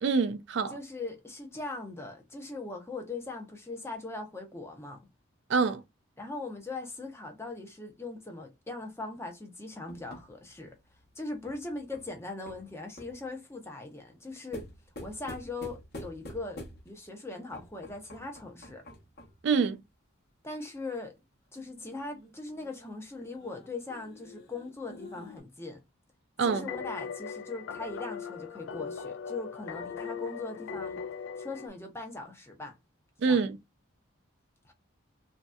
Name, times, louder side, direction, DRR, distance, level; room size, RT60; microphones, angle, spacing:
voice 1, 0.0-0.7 5.5-5.8 19.4-19.8 26.4-26.7 33.2-33.6, right 5 dB, 55° right, 0.3 m, -26 dB
voice 2, 0.7-5.1 6.2-10.8 11.2-14.7 15.0-18.8 20.4-21.1 21.5-25.8 26.4-31.0 31.4-32.8 33.2-33.4 34.6-34.7, left 3 dB, 10° left, 0.6 m, -40 dB
sound 1, 9.9-13.3 14.5-17.1 17.5-19.5 21.6-25.4, left 1 dB, 50° left, 1.0 m, -48 dB
sound 2, 26.4-31.7, left 6 dB, 65° left, 0.3 m, -39 dB
3.1 x 2.6 x 2.3 m
head